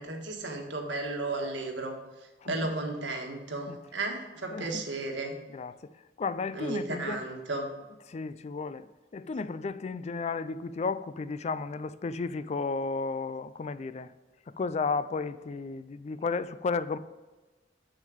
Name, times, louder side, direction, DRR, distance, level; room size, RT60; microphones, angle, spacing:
voice 1, 0.0-1.9 2.4-5.4 6.5-7.7, right 2 dB, 90° right, 1.6 m, -34 dB
voice 2, 4.5-4.8 5.5-5.9 6.2-7.2 8.1-8.9 9.1-14.1 14.6-17.0, left 4 dB, 40° left, 0.3 m, -33 dB
7.4 x 6.4 x 5.0 m
head